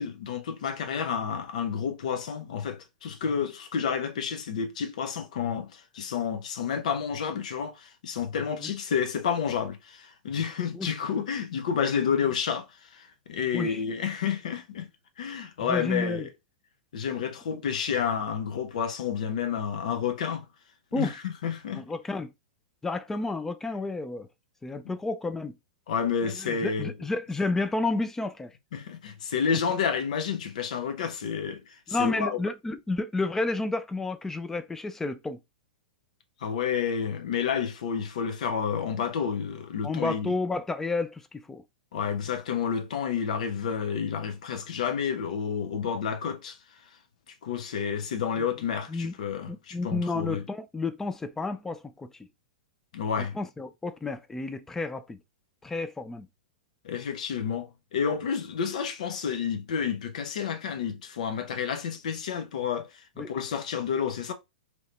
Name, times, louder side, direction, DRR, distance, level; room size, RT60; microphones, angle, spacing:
voice 1, 0.0-14.9 15.2-16.3 16.9-20.5 20.9-21.8 24.8-24.9 25.9-26.9 28.7-32.4 36.4-40.4 41.9-46.6 47.3-50.4 52.9-53.4 56.8-64.3, left 7 dB, 60° left, 0.7 m, -30 dB
voice 2, 15.6-16.3 20.9-21.1 21.7-22.3 22.8-24.3 24.6-25.6 26.4-28.5 31.9-35.4 39.8-41.6 48.9-49.1 49.5-52.1 53.3-55.2 55.6-56.3 63.2-63.3, left 3 dB, 10° left, 0.4 m, -31 dB
2.9 x 2.8 x 3.2 m
figure-of-eight pair, 100°, 4 cm